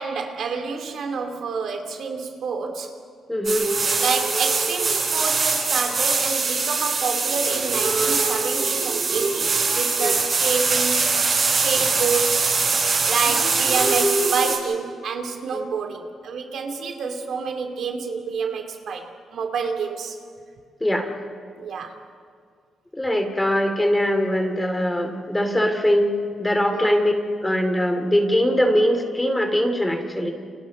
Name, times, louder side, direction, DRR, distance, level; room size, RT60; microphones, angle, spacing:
voice 1, 0.0-3.0 4.0-11.1 11.4-12.5 13.0-20.2 21.6-22.0 26.7-27.0, right 5 dB, 70° right, 4 dB, 2.7 m, -28 dB
voice 2, 3.3-3.7 10.0-10.1 15.5-15.6 20.8-21.1 23.0-26.1 26.4-27.1 27.4-30.3, equal, 10° left, 5 dB, 3.1 m, -21 dB
sound 1, 3.4-14.6, right 4 dB, 40° right, 7.5 m, -22 dB
30.0 x 29.5 x 4.3 m, 2.1 s
cardioid pair, 120°, 0 cm